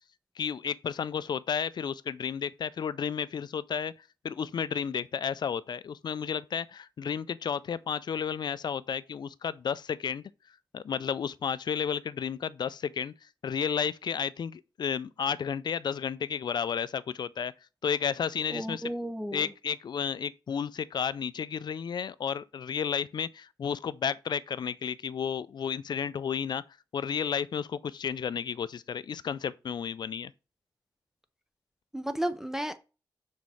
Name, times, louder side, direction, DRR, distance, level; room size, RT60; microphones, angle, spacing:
voice 1, 0.4-3.9 4.2-10.2 10.7-13.1 13.4-17.5 17.8-18.9 19.3-26.6 26.9-30.3, left 7 dB, 60° left, 0.4 m, -32 dB
voice 2, 18.5-19.5 31.9-32.8, right 1 dB, 5° right, 0.6 m, -33 dB
6.3 x 4.2 x 4.8 m
wide cardioid pair, 100°, 8 cm